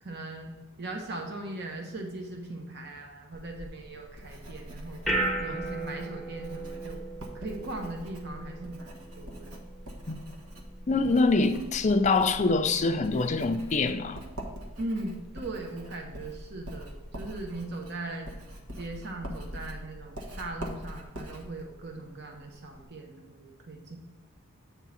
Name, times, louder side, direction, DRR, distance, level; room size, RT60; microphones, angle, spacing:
voice 1, 0.0-5.0 5.4-7.0 7.3-9.6 14.8-18.3 18.8-24.0, right 2 dB, 50° right, 2 dB, 0.9 m, -39 dB
Writing, 3.3-22.9, equal, 85° right, 1.3 m, -44 dB
sound 1, 4.0-17.6, right 2 dB, ahead, 0.8 m, -39 dB
voice 2, 10.9-14.2, left 3 dB, 30° left, 7 dB, 0.4 m, -24 dB
8.3 x 3.7 x 5.7 m, 1.3 s
head